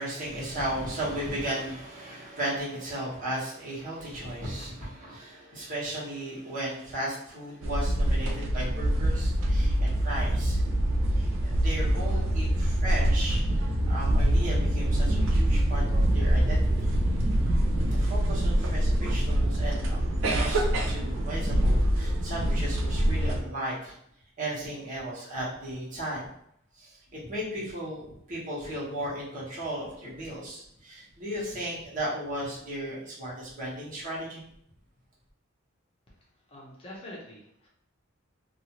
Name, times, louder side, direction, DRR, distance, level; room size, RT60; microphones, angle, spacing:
voice 1, 0.0-10.6 11.1-13.4 13.9-17.1 17.8-23.9 24.4-26.3 26.8-34.4, right 1 dB, 40° right, -8 dB, 1.2 m, -35 dB
sound 1, 7.6-23.4, right 1 dB, 65° right, 0.4 m, -25 dB
voice 2, 36.5-37.7, left 1 dB, 30° left, -4 dB, 0.7 m, -45 dB
2.7 x 2.4 x 2.9 m, 0.72 s
head